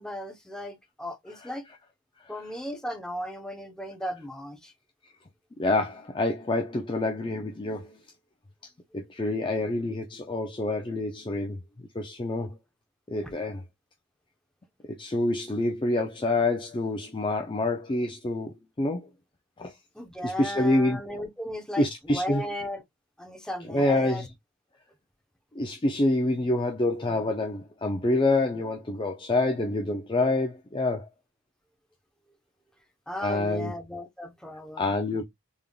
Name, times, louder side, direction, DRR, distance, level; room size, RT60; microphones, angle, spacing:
voice 1, 0.0-1.7 2.3-4.7 19.9-22.8 23.2-24.2 33.1-34.9, equal, 5° left, 0.8 m, -36 dB
voice 2, 5.6-8.0 8.9-12.6 13.1-13.6 14.8-19.1 19.6-19.7 20.2-21.0 21.8-22.4 23.7-24.3 25.6-31.1 33.2-33.7 34.8-35.2, left 2 dB, 20° left, 0.4 m, -27 dB
3.6 x 3.5 x 2.3 m
head